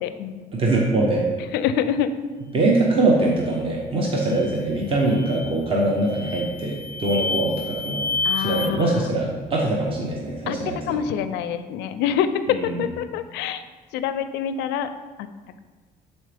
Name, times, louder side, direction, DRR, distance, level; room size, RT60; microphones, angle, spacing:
voice 1, 0.0-0.4 1.5-2.1 8.2-9.0 10.5-12.3 12.8-13.6 13.9-14.9, left 9 dB, 90° left, 11 dB, 0.4 m, -26 dB
voice 2, 0.5-1.3 2.5-8.0 8.4-11.0 12.5-12.9, right 2 dB, 35° right, -2 dB, 0.9 m, -23 dB
sound 1, 4.2-4.5 5.0-5.5 6.0-8.7, left 3 dB, 75° right, 1.0 m, -29 dB
7.2 x 4.0 x 3.4 m, 1.4 s
cardioid pair, 110°, 17 cm